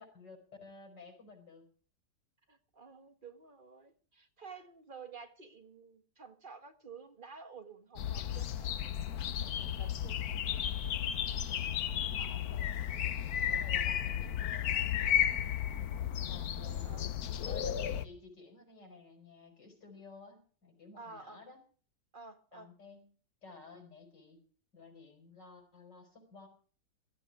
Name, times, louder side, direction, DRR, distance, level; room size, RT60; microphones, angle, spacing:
voice 1, 0.0-1.6 12.0-12.9 13.4-15.4 16.3-16.9 17.4-21.6 22.5-23.1 23.4-24.4 24.7-26.5, left 4 dB, 90° left, 5.8 m, -54 dB
voice 2, 2.5-8.9 9.4-10.2 16.6-17.0 21.0-21.4 22.1-22.7, right 5 dB, 30° right, 1.6 m, -51 dB
sound 1, 8.0-18.1, left 9 dB, 65° left, 1.3 m, -33 dB
16.0 x 13.5 x 4.9 m
omnidirectional pair, 1.8 m